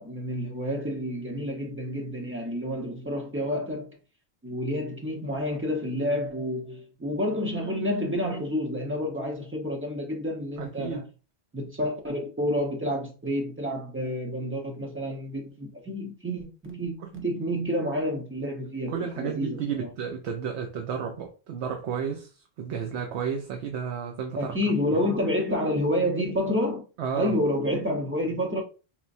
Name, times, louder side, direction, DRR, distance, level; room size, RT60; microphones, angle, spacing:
voice 1, 0.0-3.9 4.4-11.0 11.5-19.9 24.4-26.8 27.2-28.6, equal, 15° right, 0.7 m, -29 dB
voice 2, 10.6-11.1 18.9-24.6 24.9-25.0 27.0-27.4, right 7 dB, 80° right, 0.9 m, -32 dB
4.4 x 2.2 x 2.6 m
omnidirectional pair, 1.1 m